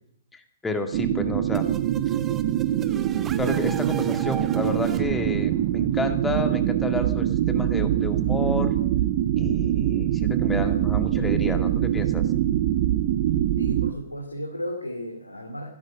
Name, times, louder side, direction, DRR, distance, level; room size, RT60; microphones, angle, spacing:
voice 1, 0.3-1.6 3.4-8.7 9.4-12.2, left 2 dB, 10° left, 6 dB, 2.1 m, -30 dB
sound 1, 0.9-13.9, right 12 dB, 45° right, 0.9 m, -24 dB
sound 2, 1.5-7.2, right 8 dB, 20° right, 1.0 m, -38 dB
voice 2, 13.6-15.7, equal, 90° left, 2 dB, 2.5 m, -34 dB
16.5 x 12.5 x 6.5 m, 0.70 s
figure-of-eight pair, 115°, 0 cm